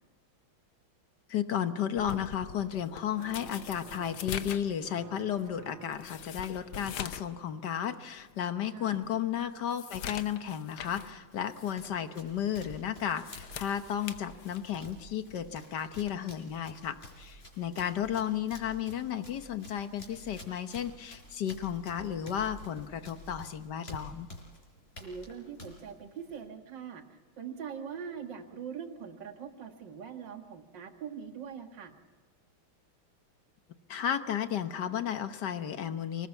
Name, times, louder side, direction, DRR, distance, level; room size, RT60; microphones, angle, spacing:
voice 1, 1.3-24.3 33.9-36.3, left 9 dB, 60° left, 10 dB, 1.5 m, -33 dB
sound 1, 2.0-7.4 7.7-7.8 8.4-8.5 8.9-11.1 11.5-11.7 13.0-14.9 16.0-16.2, left 9 dB, 80° left, 1.8 m, -43 dB
sound 2, 3.1-4.5 4.8-6.4, right 8 dB, 80° right, 1.9 m, -52 dB
voice 2, 8.7-9.0 10.9-11.1 18.0-18.3 25.0-31.9, right 7 dB, 60° right, 5 dB, 2.3 m, -43 dB
Run, 11.2-26.5, left 1 dB, 30° left, 4.6 m, -50 dB
26.0 x 19.0 x 7.2 m, 1.4 s
omnidirectional pair, 2.3 m